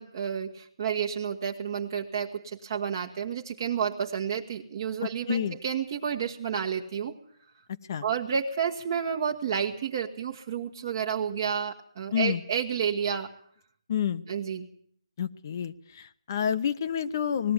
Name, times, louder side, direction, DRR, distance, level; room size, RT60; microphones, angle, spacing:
voice 1, 0.0-7.1 8.0-13.3 14.3-14.7, right 7 dB, 35° right, 2 dB, 1.3 m, -30 dB
voice 2, 5.0-5.6 7.9-8.0 12.1-12.4 13.9-14.2 15.2-17.5, left 8 dB, 40° left, 10 dB, 0.8 m, -29 dB
19.5 x 14.5 x 9.6 m, 0.63 s
figure-of-eight pair, 160°, 3 cm